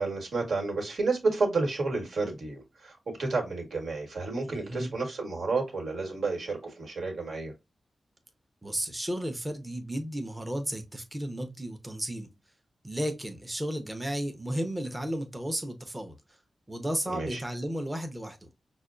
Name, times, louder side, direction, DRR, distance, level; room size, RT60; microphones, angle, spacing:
voice 1, 0.0-7.5 17.0-17.4, right 3 dB, 70° right, 1.4 m, -31 dB
voice 2, 4.5-4.9 8.6-12.3 12.8-16.2 16.7-18.4, right 1 dB, 10° right, 0.7 m, -33 dB
5.8 x 2.2 x 2.5 m
wide cardioid pair, 150°, 0 cm